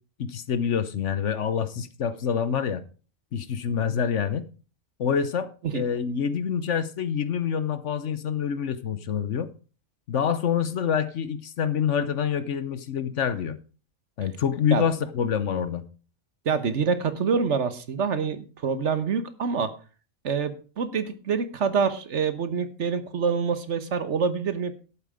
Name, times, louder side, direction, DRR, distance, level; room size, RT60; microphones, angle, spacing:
voice 1, 0.2-2.8 3.3-4.5 5.0-9.5 10.1-13.6 14.2-15.8, left 7 dB, 60° left, 1.1 m, -26 dB
voice 2, 16.4-19.7 20.2-24.7, right 6 dB, 60° right, 1.3 m, -26 dB
12.0 x 8.9 x 4.9 m
omnidirectional pair, 1.4 m